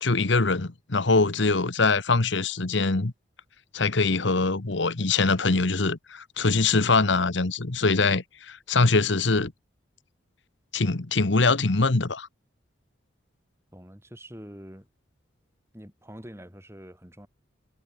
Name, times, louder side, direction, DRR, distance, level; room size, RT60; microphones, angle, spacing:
voice 1, 0.0-3.1 3.7-9.5 10.7-12.3, left 3 dB, 70° left, 1.2 m, -23 dB
voice 2, 13.7-14.9 15.7-17.3, equal, 15° right, 5.7 m, -45 dB
head